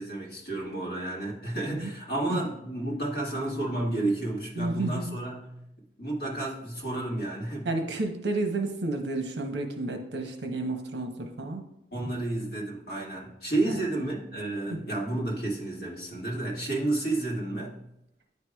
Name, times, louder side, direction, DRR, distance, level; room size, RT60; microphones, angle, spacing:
voice 1, 0.0-5.6 6.0-7.7 11.9-17.8, right 2 dB, 55° left, -3 dB, 1.6 m, -31 dB
voice 2, 4.6-5.2 7.6-11.6 13.7-13.8 14.7-14.8, right 2 dB, 70° right, 5 dB, 0.8 m, -31 dB
9.6 x 4.7 x 2.3 m, 0.83 s
head